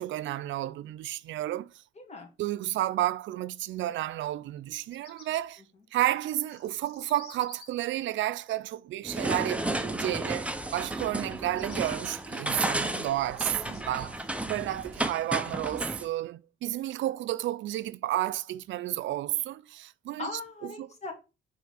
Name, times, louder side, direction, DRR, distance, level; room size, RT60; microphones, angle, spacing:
voice 1, 0.0-1.8 2.4-5.6 5.9-20.3 20.6-20.9, right 14 dB, 70° right, 0.4 m, -31 dB
voice 2, 2.0-2.3 14.7-15.1 20.2-21.1, left 3 dB, 35° left, 2.4 m, -40 dB
Bird vocalization bird call bird song, 4.6-5.4 6.2-7.7 11.2-11.9 12.6-14.1, left 4 dB, 55° left, 2.1 m, -52 dB
sound 1, 9.0-16.0, right 1 dB, 5° right, 0.8 m, -33 dB
5.8 x 3.6 x 5.6 m
cardioid pair, 90°, 20 cm